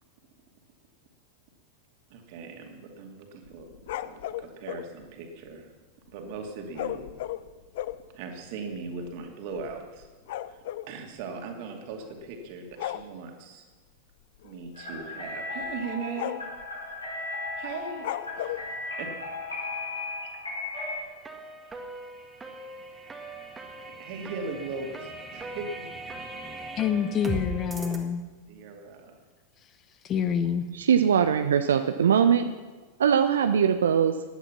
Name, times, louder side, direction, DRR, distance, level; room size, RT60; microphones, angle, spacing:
voice 1, 2.1-3.7 4.0-5.7 6.1-7.0 8.1-10.1 10.5-10.6 10.9-13.7 14.4-16.4 17.6-18.1 18.4-19.1 20.2-20.3 24.0-25.7 28.5-29.1, right 4 dB, 45° right, 3 dB, 2.6 m, -39 dB
sound 1, 3.4-4.9 6.7-8.1 8.8-8.9 9.1-9.3 9.6-10.9 12.0-12.3 12.7-13.1 14.4-14.6 15.0-15.1 15.6-15.8 16.2-16.6 18.0-18.7, left 13 dB, 55° left, 0.6 m, -35 dB
sound 2, 14.8-21.0, left 2 dB, 80° left, 4.6 m, -36 dB
sound 3, 20.7-28.0, right 2 dB, 15° right, 1.9 m, -39 dB
voice 2, 26.8-28.2 30.0-30.6, left 8 dB, 30° left, 12 dB, 0.9 m, -27 dB
voice 3, 30.7-32.6 33.0-34.2, right 7 dB, 65° right, 8 dB, 0.6 m, -21 dB
16.5 x 11.0 x 6.0 m, 1.3 s
figure-of-eight pair, 90°, 0 cm